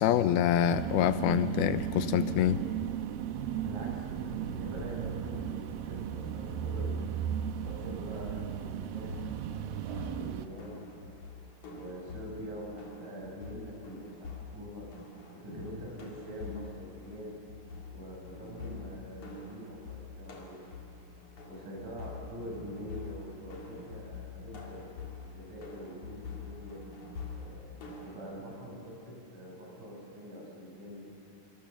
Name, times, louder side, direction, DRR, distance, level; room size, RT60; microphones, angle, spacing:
voice 1, 0.0-2.6, left 10 dB, 90° left, 11 dB, 2.8 m, -26 dB
sound 1, 0.6-10.5, right 9 dB, 80° right, 2.6 m, -36 dB
voice 2, 3.6-7.1 7.6-11.2 11.7-14.9 15.3-17.4 17.9-20.8 21.5-26.8 27.4-31.1, equal, 55° right, -3 dB, 8.7 m, -44 dB
sound 2, 9.0-28.1, left 5 dB, 55° left, 4.5 m, -46 dB
26.0 x 25.5 x 7.1 m, 2.6 s
omnidirectional pair, 4.3 m